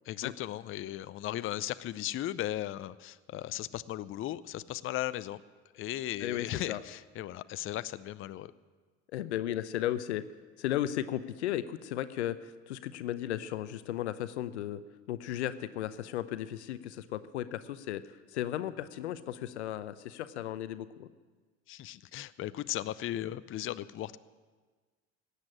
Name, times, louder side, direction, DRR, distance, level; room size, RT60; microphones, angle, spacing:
voice 1, 0.1-5.4 5.7-8.5 21.7-24.2, left 13 dB, 40° left, 15 dB, 0.6 m, -37 dB
voice 2, 6.2-6.8 9.1-10.3 10.6-14.8 15.1-21.1, left 12 dB, 80° left, 14 dB, 0.7 m, -35 dB
16.5 x 8.3 x 10.0 m, 1.4 s
hypercardioid pair, 65°, 33 cm